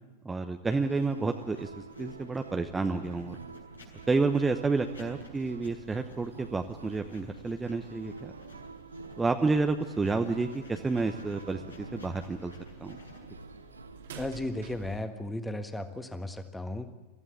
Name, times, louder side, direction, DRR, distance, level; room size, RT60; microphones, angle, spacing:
voice 1, 0.2-1.7 2.0-3.4 4.1-8.3 9.2-12.5 12.8-13.0, right 3 dB, 10° right, 6 dB, 0.9 m, -30 dB
sound 1, 0.7-14.6, right 4 dB, 80° right, 1.1 m, -47 dB
Writing, 0.9-15.7, left 2 dB, 80° left, 5.3 m, -54 dB
sound 2, 3.9-15.0, right 6 dB, 60° right, 2.6 m, -54 dB
voice 2, 14.1-16.9, left 1 dB, 5° left, 8 dB, 1.6 m, -35 dB
23.5 x 15.0 x 8.8 m, 1.2 s
figure-of-eight pair, 90°, 0 cm